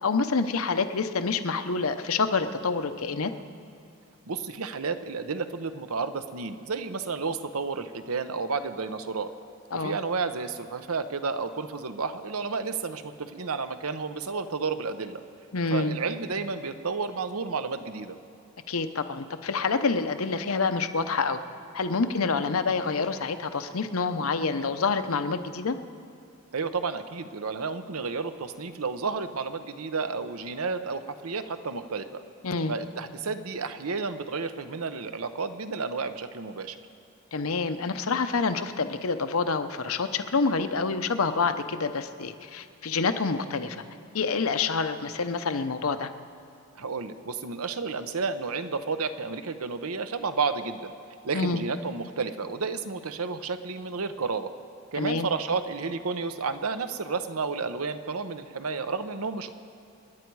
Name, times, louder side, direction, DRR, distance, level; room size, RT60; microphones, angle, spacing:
voice 1, 0.0-3.3 9.7-10.0 15.5-16.0 18.7-21.4 21.7-25.8 32.4-32.8 37.3-43.8 44.1-46.1 51.3-51.6 54.9-55.3, left 4 dB, 80° left, 9 dB, 0.8 m, -27 dB
voice 2, 4.3-9.3 9.7-15.2 15.7-18.1 26.5-32.2 32.7-36.8 46.8-50.9 51.2-54.5 54.9-59.5, right 4 dB, 85° right, 10 dB, 0.8 m, -31 dB
28.0 x 10.5 x 4.7 m, 2.4 s
head